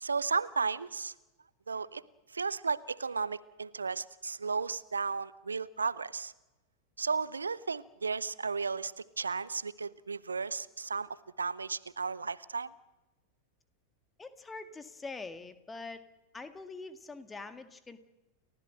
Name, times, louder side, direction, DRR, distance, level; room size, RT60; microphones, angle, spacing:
voice 1, 0.0-1.1 1.7-2.0 2.3-6.3 7.0-11.1 11.4-12.7, right 5 dB, 75° right, 19 dB, 0.7 m, -34 dB
voice 2, 14.2-16.0 16.3-18.0, left 3 dB, 15° left, 10 dB, 1.8 m, -44 dB
30.0 x 15.0 x 7.7 m, 1.1 s
figure-of-eight pair, 90°, 0 cm